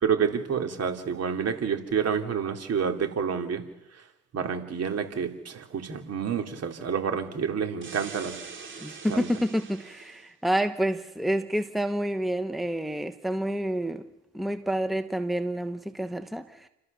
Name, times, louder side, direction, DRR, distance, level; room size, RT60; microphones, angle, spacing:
voice 1, 0.0-3.6 4.3-8.3 9.1-9.3, right 7 dB, 55° right, 2.9 m, -28 dB
sound 1, 7.8-10.3, right 5 dB, 40° right, 3.4 m, -43 dB
voice 2, 8.8-14.0 14.3-16.7, equal, ahead, 1.0 m, -28 dB
30.0 x 13.5 x 6.8 m
cardioid pair, 90°, 30 cm